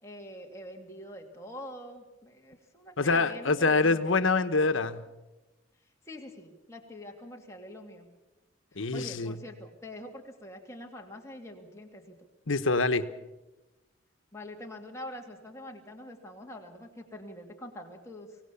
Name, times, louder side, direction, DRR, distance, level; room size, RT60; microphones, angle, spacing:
voice 1, 0.0-4.1 6.0-8.1 8.9-12.2 14.3-18.4, left 1 dB, 15° left, 1 dB, 2.4 m, -45 dB
voice 2, 3.0-5.0 8.8-9.3 12.5-13.0, left 3 dB, 80° left, 11 dB, 1.1 m, -25 dB
24.0 x 17.5 x 7.1 m, 1.0 s
head